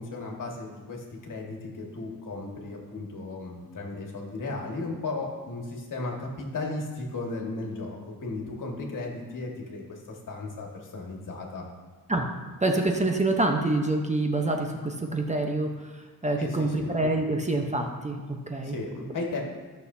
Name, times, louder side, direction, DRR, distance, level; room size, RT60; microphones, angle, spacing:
voice 1, 0.0-11.7 16.4-16.9 18.6-19.4, left 3 dB, 60° left, 0 dB, 1.8 m, -35 dB
voice 2, 12.6-15.7 16.2-18.8, right 2 dB, 20° right, 2 dB, 0.9 m, -26 dB
15.0 x 6.5 x 2.8 m, 1.4 s
cardioid pair, 95°, 36 cm